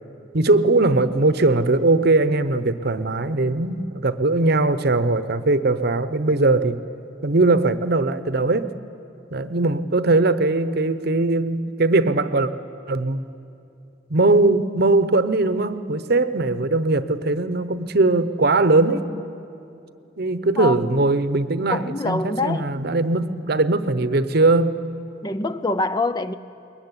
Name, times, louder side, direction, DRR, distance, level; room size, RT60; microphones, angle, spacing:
voice 1, 0.3-6.8 7.2-8.7 9.3-12.5 12.9-13.2 14.1-19.1 20.2-24.8, right 2 dB, 55° right, 0.9 m, -20 dB
voice 2, 20.6-21.0 21.7-22.7 25.2-26.3, left 2 dB, 20° left, 0.5 m, -25 dB
22.0 x 21.5 x 9.8 m
head